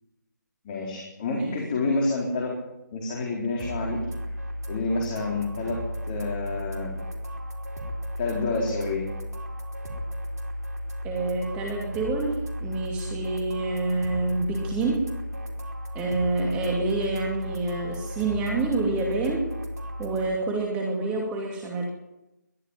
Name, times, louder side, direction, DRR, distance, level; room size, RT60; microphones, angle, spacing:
voice 1, 0.6-2.5 2.9-4.0 4.3-4.4 4.7-7.0 8.2-9.0, left 3 dB, 25° left, -1 dB, 4.2 m, -28 dB
sound 1, 3.6-20.3, equal, 60° right, 4.7 m, -34 dB
voice 2, 11.0-15.1 15.9-19.5 20.0-21.8, right 3 dB, 10° right, 0 dB, 2.5 m, -27 dB
22.0 x 12.5 x 9.9 m, 0.95 s
figure-of-eight pair, 155°, 10 cm